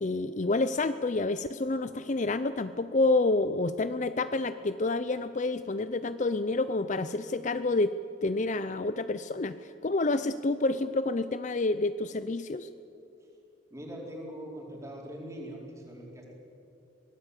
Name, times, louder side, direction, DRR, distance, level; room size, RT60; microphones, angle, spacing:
voice 1, 0.0-7.9 8.2-12.7, left 2 dB, 35° left, 12 dB, 0.5 m, -28 dB
voice 2, 13.7-16.3, equal, 15° right, -2 dB, 4.3 m, -42 dB
24.5 x 18.0 x 8.3 m, 2.7 s
head